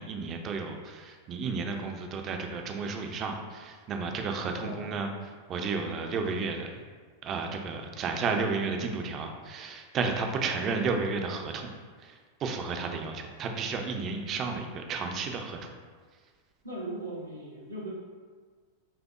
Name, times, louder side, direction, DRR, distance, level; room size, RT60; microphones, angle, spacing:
voice 1, 0.0-6.7 7.2-11.7 12.0-15.7, right 4 dB, 30° right, 4 dB, 0.4 m, -32 dB
voice 2, 4.6-4.9 10.4-10.6 16.6-17.9, right 1 dB, 85° right, -6 dB, 0.6 m, -39 dB
5.5 x 2.0 x 2.4 m, 1.5 s
figure-of-eight pair, 90°, 0 cm